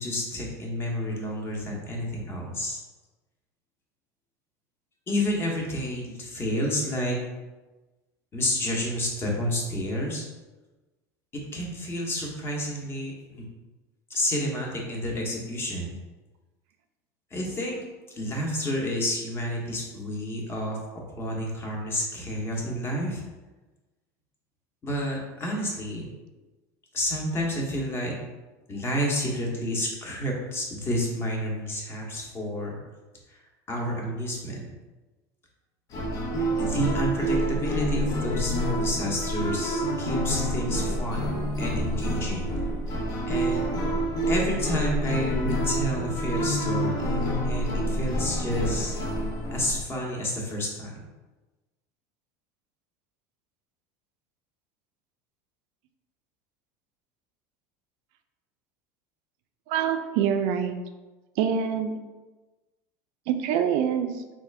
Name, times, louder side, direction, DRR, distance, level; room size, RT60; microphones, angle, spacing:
voice 1, 0.0-2.8 5.1-7.2 8.3-10.2 11.3-13.4 14.1-15.9 17.3-17.8 18.1-20.8 21.2-23.2 24.8-26.1 26.9-28.1 28.7-32.8 33.3-33.4 33.7-34.6 36.6-41.3 41.6-42.5 43.3-43.7 44.3-49.0 49.5-50.9, equal, 25° left, -2 dB, 1.0 m, -30 dB
sound 1, 35.9-49.8, right 1 dB, 45° left, 0.7 m, -28 dB
voice 2, 59.7-60.8 61.4-61.9 63.3-64.1, right 8 dB, 65° right, 7 dB, 0.4 m, -25 dB
3.5 x 2.4 x 3.3 m, 1.2 s
supercardioid pair, 110°, 9 cm